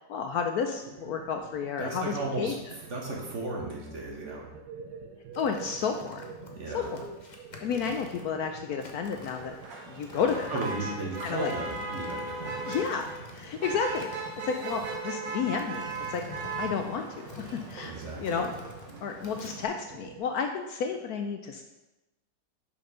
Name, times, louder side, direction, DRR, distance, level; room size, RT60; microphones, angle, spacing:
voice 1, 0.1-2.5 5.4-6.2 6.7-7.0 7.6-9.5 9.9-10.6 11.2-11.5 12.6-13.0 13.3-14.1 14.4-16.2 16.6-17.9 18.2-18.5 19.0-21.6, left 6 dB, 70° left, 5 dB, 1.0 m, -31 dB
sound 1, 0.8-20.2, right 5 dB, 70° right, 1.2 m, -48 dB
voice 2, 1.8-2.5 2.9-4.5 6.5-6.9 10.5-12.7 17.8-18.5, right 2 dB, 45° right, -2 dB, 1.6 m, -35 dB
sound 2, 5.3-19.5, left 4 dB, 35° left, 0.8 m, -49 dB
Motor vehicle (road), 9.2-19.7, right 3 dB, 85° right, 1.8 m, -38 dB
6.8 x 5.6 x 5.1 m, 1.0 s
omnidirectional pair, 1.9 m